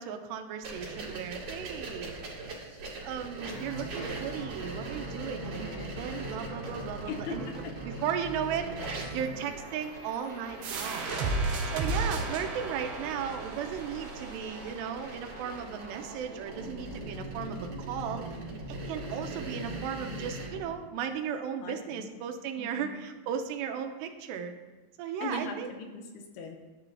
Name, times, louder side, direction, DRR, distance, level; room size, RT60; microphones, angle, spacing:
voice 1, 0.0-2.2 3.0-7.5 7.8-8.7 9.0-11.1 11.7-18.4 18.7-24.5 25.0-25.7, right 8 dB, 90° right, 6 dB, 2.8 m, -36 dB
sound 1, 0.6-20.5, right 3 dB, 55° right, 3.4 m, -43 dB
sound 2, 3.4-20.6, right 1 dB, 15° right, 2.7 m, -42 dB
voice 2, 5.4-6.0 7.1-7.5 11.9-12.3 21.6-22.1 22.6-23.0 25.2-26.6, left 3 dB, 80° left, 4 dB, 2.6 m, -40 dB
sound 3, 10.6-16.0, right 3 dB, 70° right, 3.0 m, -34 dB
11.0 x 9.9 x 2.8 m, 1.2 s
omnidirectional pair, 4.9 m